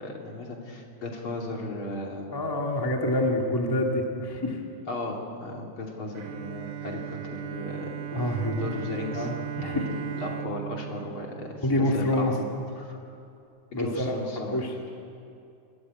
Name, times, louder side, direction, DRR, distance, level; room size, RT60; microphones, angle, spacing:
voice 1, 0.0-2.3 4.9-7.9 8.6-9.3 9.6-12.5 12.8-12.9 13.7-14.6, left 2 dB, 45° left, 0 dB, 3.6 m, -35 dB
voice 2, 2.3-4.6 8.1-8.7 9.1-9.9 11.6-12.3 13.7-14.7, left 1 dB, 10° left, 0 dB, 1.5 m, -27 dB
Bowed string instrument, 6.2-12.3, right 10 dB, 70° right, 2.2 m, -37 dB
28.5 x 14.5 x 9.5 m, 2.6 s
omnidirectional pair, 3.4 m